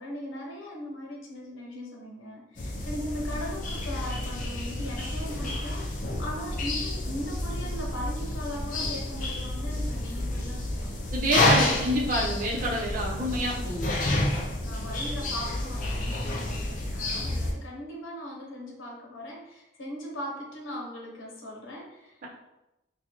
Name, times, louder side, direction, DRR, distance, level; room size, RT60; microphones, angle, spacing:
voice 1, 0.0-10.9 11.3-12.1 14.6-22.3, equal, 85° left, -2 dB, 0.9 m, -39 dB
sound 1, 2.6-17.5, left 2 dB, 40° left, 0.4 m, -29 dB
voice 2, 11.1-13.9, equal, 40° right, -4 dB, 0.7 m, -28 dB
4.0 x 2.3 x 2.8 m, 0.94 s
head